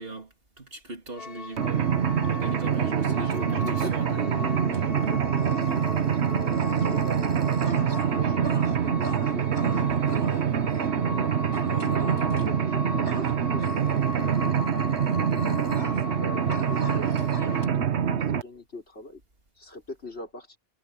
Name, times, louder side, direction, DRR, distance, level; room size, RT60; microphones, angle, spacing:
voice 1, 0.0-1.8 2.2-4.3, right 2 dB, 65° right, 3.3 m, -39 dB
sound 1, 1.2-17.7, left 3 dB, 35° left, 1.5 m, -39 dB
Mechanisms, 1.6-18.4, right 8 dB, 90° right, 1.3 m, -25 dB
voice 2, 2.6-7.4 7.9-9.5 10.0-14.6 15.0-19.2 19.5-20.6, left 2 dB, 80° left, 4.9 m, -42 dB
Dog, 4.7-10.9 11.5-12.6 13.1-16.2 16.5-17.7, right 1 dB, 20° right, 4.1 m, -42 dB
omnidirectional pair, 1.1 m